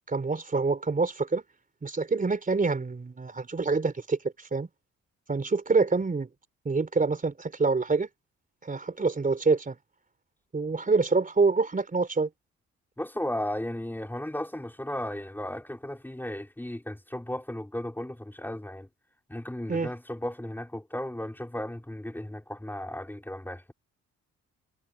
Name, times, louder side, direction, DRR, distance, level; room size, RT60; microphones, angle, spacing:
voice 1, 0.1-1.4 1.8-4.7 5.3-6.3 6.6-8.1 8.6-9.8 10.5-12.3 19.7-19.9, right 4 dB, 25° right, 4.1 m, -26 dB
voice 2, 13.0-18.9 19.3-23.7, left 1 dB, 5° left, 4.2 m, -35 dB
cardioid pair, 90°, 30 cm